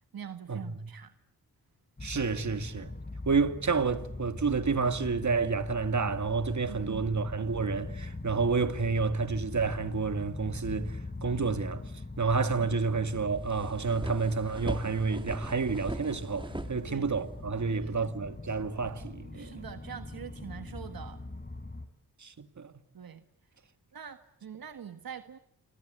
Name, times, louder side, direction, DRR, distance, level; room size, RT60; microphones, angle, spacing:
voice 1, 0.1-1.1 6.7-7.0 12.5-13.1 16.9-17.1 17.7-18.1 19.3-21.2 22.9-23.2 23.9-25.4, right 8 dB, 70° right, 1.6 m, -44 dB
sound 1, 2.0-21.9, left 2 dB, 25° left, 3.9 m, -42 dB
voice 2, 2.0-2.9 3.3-11.8 12.2-19.6 22.2-22.7, right 4 dB, 50° right, 2.2 m, -30 dB
sound 2, 13.2-17.4, right 1 dB, 15° right, 2.4 m, -40 dB
28.0 x 25.0 x 8.1 m
cardioid pair, 70°, 36 cm